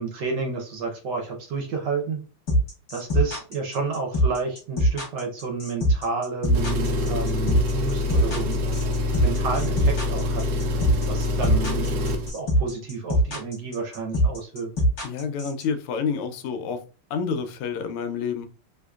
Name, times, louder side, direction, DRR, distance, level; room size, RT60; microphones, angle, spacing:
voice 1, 0.0-2.2 2.9-8.6 9.2-10.6 11.1-12.0 12.3-14.7, right 4 dB, 65° right, 2 dB, 1.1 m, -30 dB
sound 1, 2.5-15.6, equal, 40° left, 1.2 m, -22 dB
Engine, 6.4-12.3, left 2 dB, 85° right, 0.8 m, -25 dB
voice 2, 15.0-16.8 17.1-18.5, left 6 dB, 90° left, 9 dB, 1.5 m, -28 dB
3.8 x 2.8 x 2.3 m, 0.36 s
omnidirectional pair, 2.4 m